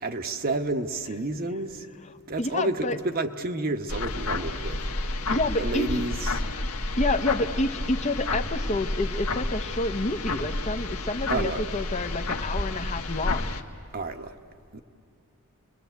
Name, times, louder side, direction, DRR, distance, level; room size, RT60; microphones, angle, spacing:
voice 1, 0.0-1.8 2.3-4.8 5.6-6.3 11.3-11.6 13.9-14.3 14.7-14.8, right 2 dB, 45° right, 6 dB, 1.1 m, -30 dB
voice 2, 2.4-3.0 5.3-6.0 7.0-13.5, left 2 dB, 30° left, 8 dB, 0.8 m, -29 dB
sound 1, 3.9-13.6, left 2 dB, 85° left, 1.4 m, -30 dB
29.5 x 21.5 x 8.2 m, 2.5 s
head